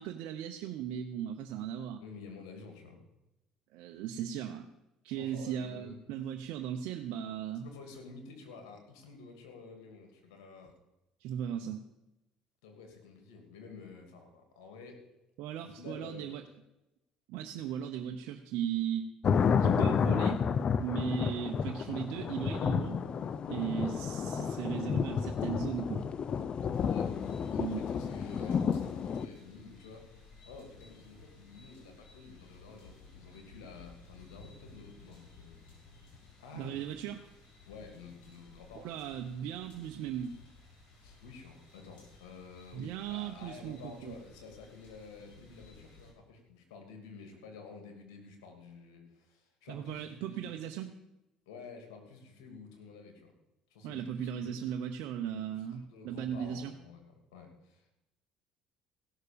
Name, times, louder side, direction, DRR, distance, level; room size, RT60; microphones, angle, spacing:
voice 1, 0.0-2.0 3.7-4.7 5.0-7.7 11.2-11.8 15.4-16.4 17.3-19.1 19.4-20.5 20.8-23.0 23.5-26.1 27.6-27.8 36.5-37.3 38.7-40.4 42.7-44.1 49.7-50.9 53.8-56.7, right 9 dB, 75° right, 4 dB, 0.8 m, -37 dB
voice 2, 2.0-3.0 5.2-6.0 7.6-10.7 12.6-15.0 15.6-16.3 17.5-17.7 26.8-27.1 27.5-30.0 30.4-35.6 36.4-36.8 37.7-38.9 41.0-50.5 51.5-53.3 53.7-54.6 55.5-57.9, left 4 dB, 90° left, 4 dB, 2.7 m, -50 dB
sound 1, 19.2-29.3, left 6 dB, 45° left, 0.7 m, -31 dB
sound 2, 26.7-46.1, left 3 dB, 75° left, 5.9 m, -56 dB
16.0 x 6.6 x 6.9 m, 0.94 s
supercardioid pair, 80°, 2 cm